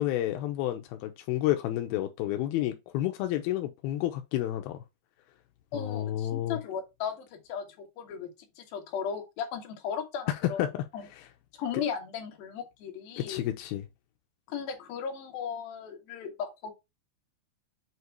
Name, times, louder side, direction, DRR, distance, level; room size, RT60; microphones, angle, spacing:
voice 1, 0.0-4.8 5.7-6.6 10.3-10.8 11.1-11.2 13.2-13.9, left 13 dB, 80° left, 2.2 m, -30 dB
voice 2, 5.7-8.3 8.6-10.6 10.9-11.0 11.6-13.4 14.5-16.7, left 7 dB, 65° left, 2.9 m, -36 dB
8.0 x 2.9 x 4.6 m
omnidirectional pair, 5.0 m